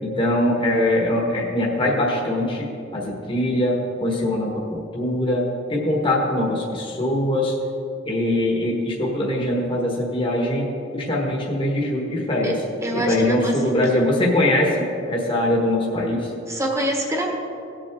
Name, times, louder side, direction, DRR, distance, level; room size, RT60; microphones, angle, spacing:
voice 1, 0.0-2.7 2.9-7.5 8.0-12.6 12.9-16.3, left 1 dB, 25° left, -2 dB, 1.3 m, -22 dB
voice 2, 12.4-14.1 16.5-17.3, right 1 dB, 15° right, 1 dB, 1.4 m, -26 dB
17.5 x 7.6 x 3.6 m, 2.6 s
head